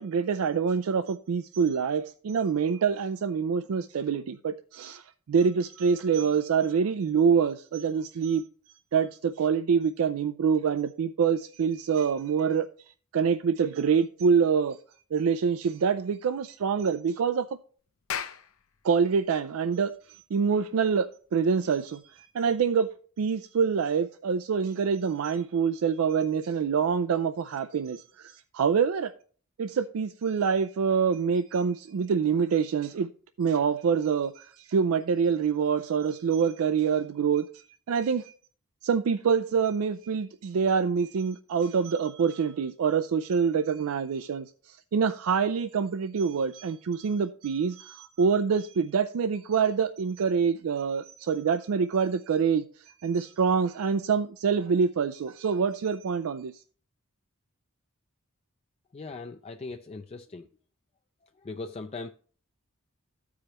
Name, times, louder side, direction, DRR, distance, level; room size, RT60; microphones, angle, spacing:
voice 1, 0.0-8.4 8.9-12.7 13.1-14.8 15.1-17.5 18.8-22.9 23.2-29.1 29.6-33.1 33.4-38.3 38.8-56.5, right 6 dB, 85° right, 0.4 m, -26 dB
Clapping, 17.9-22.8, left 8 dB, 75° left, 0.6 m, -41 dB
voice 2, 58.9-60.5 61.4-62.1, left 3 dB, 30° left, 0.3 m, -39 dB
14.5 x 4.8 x 2.9 m
head